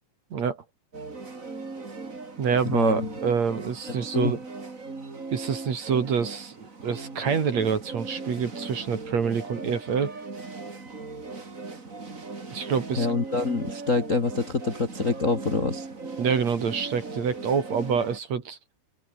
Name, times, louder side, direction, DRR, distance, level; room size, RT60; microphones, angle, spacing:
voice 1, 0.3-0.6 2.4-4.4 5.3-10.1 12.5-13.1 16.2-18.6, right 6 dB, 45° right, 3.2 m, -26 dB
sound 1, 0.9-18.2, right 3 dB, 20° right, 2.7 m, -38 dB
voice 2, 2.6-3.1 4.0-4.3 13.0-15.9, left 3 dB, 85° left, 0.7 m, -26 dB
open air
omnidirectional pair, 5.2 m